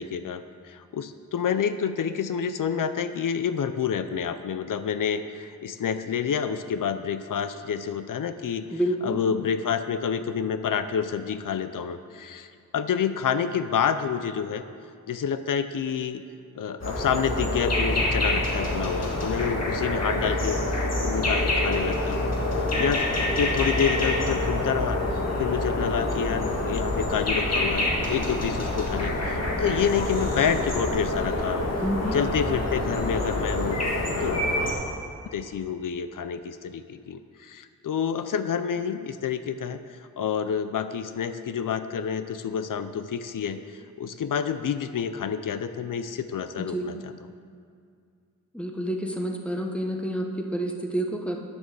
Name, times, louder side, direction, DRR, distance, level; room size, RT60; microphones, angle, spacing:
voice 1, 0.0-8.7 9.0-14.6 15.1-16.2 16.5-20.6 21.0-22.3 22.8-23.0 23.4-25.0 25.4-31.7 32.1-33.8 34.2-34.5 35.3-39.8 40.2-47.1, left 7 dB, 80° left, 10 dB, 0.5 m, -28 dB
voice 2, 8.7-9.2 31.8-32.2 46.6-47.0 48.5-51.4, right 1 dB, 5° left, 2 dB, 1.0 m, -29 dB
sound 1, 16.8-34.7, left 1 dB, 55° left, 2.0 m, -26 dB
9.8 x 7.8 x 6.7 m, 2.3 s
wide cardioid pair, 135°, 32 cm